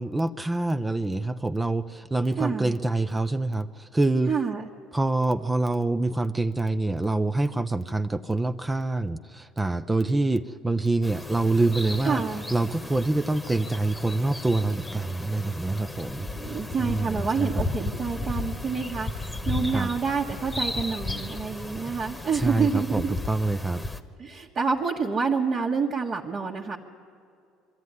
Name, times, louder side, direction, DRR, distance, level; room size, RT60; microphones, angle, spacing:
voice 1, 0.0-4.3 4.9-12.2 12.5-17.7 19.7-19.9 22.3-23.8, right 2 dB, 15° right, 10 dB, 0.6 m, -26 dB
voice 2, 2.4-2.8 4.3-4.7 12.0-12.4 16.4-23.1 24.2-26.8, right 5 dB, 40° right, -3 dB, 1.5 m, -28 dB
sound 1, 11.0-24.0, left 2 dB, 15° left, 1.3 m, -35 dB
22.5 x 13.5 x 9.7 m, 2.4 s
supercardioid pair, 90°, 0 cm